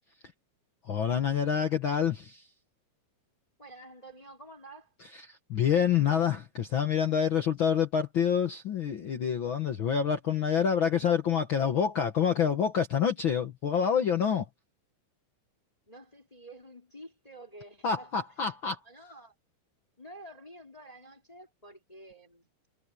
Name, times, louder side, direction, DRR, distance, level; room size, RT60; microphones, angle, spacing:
voice 1, 0.9-2.4 5.3-14.5 17.8-18.8, left 7 dB, 60° left, 1.3 m, -27 dB
voice 2, 3.6-4.9 15.9-18.3 18.6-19.3 20.0-22.5, right 1 dB, 10° left, 3.5 m, -49 dB
omnidirectional pair, 3.9 m